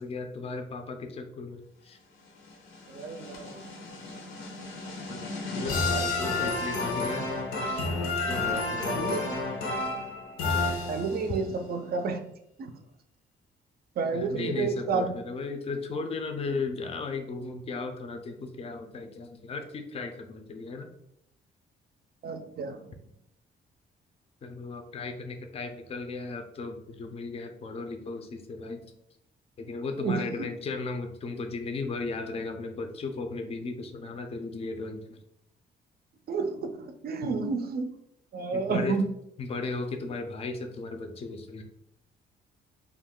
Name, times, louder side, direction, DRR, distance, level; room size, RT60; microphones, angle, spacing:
voice 1, 0.0-2.0 5.1-5.2 5.5-7.3 7.6-7.9 8.3-9.4 14.1-20.9 24.4-28.9 29.6-35.2 37.2-37.3 38.5-39.0 39.4-41.6, left 3 dB, 30° left, 5 dB, 0.4 m, -36 dB
sound 1, 2.5-11.4, left 3 dB, 85° left, 0.7 m, -31 dB
voice 2, 2.9-3.6 8.9-9.2 10.9-12.2 12.6-12.7 14.0-15.1 22.2-22.9 30.0-30.5 36.3-37.9 38.3-39.1, right 4 dB, 50° right, 7 dB, 0.5 m, -30 dB
2.4 x 2.2 x 3.6 m, 0.77 s
cardioid pair, 90°, 20 cm